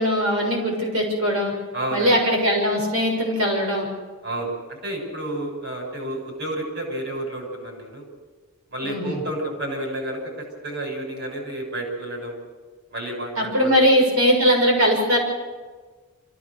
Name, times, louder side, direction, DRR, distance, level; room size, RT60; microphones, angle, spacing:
voice 1, 0.0-1.5 1.9-3.9 8.8-9.2 13.4-15.2, equal, 85° right, 1 dB, 6.3 m, -20 dB
voice 2, 1.7-2.1 4.2-8.0 8.7-12.3 12.9-13.8, right 1 dB, 55° right, 1 dB, 6.4 m, -30 dB
25.5 x 16.0 x 6.7 m, 1.4 s
head